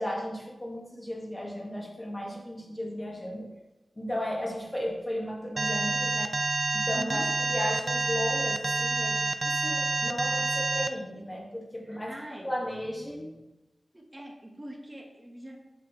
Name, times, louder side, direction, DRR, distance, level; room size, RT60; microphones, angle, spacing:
voice 1, 0.0-3.5 4.0-6.3 6.7-13.4, equal, 25° left, -2 dB, 1.8 m, -35 dB
Alarm, 5.6-10.9, right 3 dB, 45° right, 0.4 m, -28 dB
voice 2, 6.9-7.3 11.9-12.6 13.9-15.6, right 1 dB, 25° right, 2 dB, 1.2 m, -42 dB
7.3 x 6.2 x 3.1 m, 1.0 s
wide cardioid pair, 65°, 0 cm